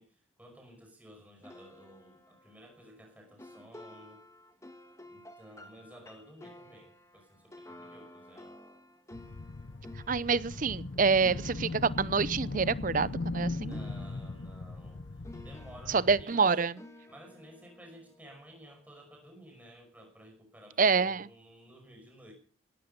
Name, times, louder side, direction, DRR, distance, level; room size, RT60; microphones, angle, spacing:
voice 1, 0.0-4.2 5.1-8.6 13.6-15.0 15.3-16.5 17.1-22.3, equal, 5° right, 3 dB, 5.3 m, -54 dB
sound 1, 1.4-13.4 13.7-18.9, left 1 dB, 15° left, 1.5 m, -53 dB
sound 2, 9.1-16.2, left 2 dB, 65° left, 0.7 m, -38 dB
voice 2, 10.1-13.8 15.9-16.7 20.8-21.3, right 5 dB, 40° right, 18 dB, 0.6 m, -27 dB
17.5 x 12.5 x 5.4 m, 0.42 s
head